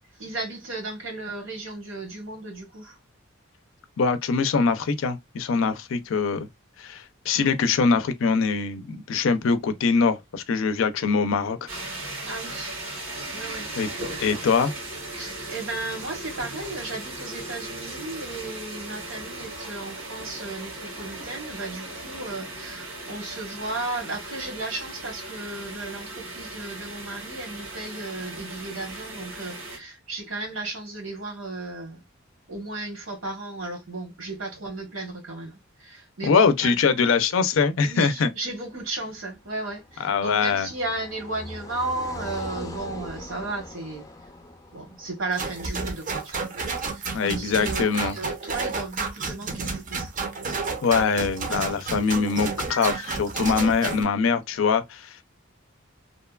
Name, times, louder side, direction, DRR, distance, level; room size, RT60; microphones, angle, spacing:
voice 1, 0.2-3.0 12.2-12.7 13.3-13.7 15.2-32.0 32.5-36.8 37.8-44.0 44.7-46.5 46.9-50.1, right 2 dB, 75° right, 1.1 m, -34 dB
voice 2, 4.0-6.5 6.8-11.7 13.8-13.9 14.2-14.7 36.2-38.3 40.0-40.7 47.1-48.2 50.8-55.2, left 5 dB, 70° left, 0.4 m, -23 dB
sound 1, 11.7-29.8, right 2 dB, 90° right, 1.4 m, -37 dB
Car passing by, 39.2-46.4, left 1 dB, 15° left, 0.5 m, -41 dB
sound 2, 45.4-54.0, right 4 dB, 40° right, 0.5 m, -31 dB
2.7 x 2.2 x 2.2 m
head